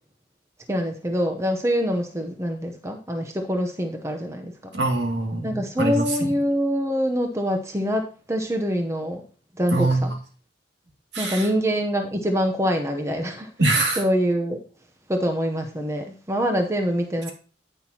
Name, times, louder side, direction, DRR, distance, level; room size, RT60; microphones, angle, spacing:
voice 1, 0.7-4.5 5.4-9.2 9.6-10.1 11.2-13.5 14.0-14.6 15.1-17.3, equal, 15° right, 4 dB, 0.8 m, -25 dB
voice 2, 4.7-6.3 9.7-10.1 11.1-11.5 13.6-14.0, right 2 dB, 65° right, 1 dB, 2.4 m, -23 dB
10.0 x 8.9 x 2.9 m, 0.38 s
head